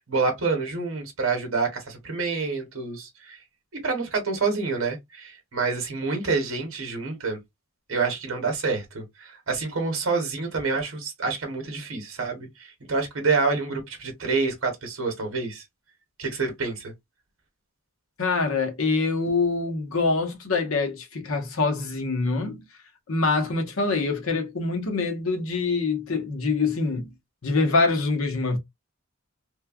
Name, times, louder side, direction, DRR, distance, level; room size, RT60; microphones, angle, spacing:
voice 1, 0.1-3.4 3.8-7.4 7.9-15.6 16.2-16.9, right 4 dB, 65° right, 0.9 m, -27 dB
voice 2, 18.2-22.6 23.1-27.1 27.4-28.6, left 3 dB, 75° left, 0.9 m, -25 dB
3.1 x 2.2 x 2.3 m
head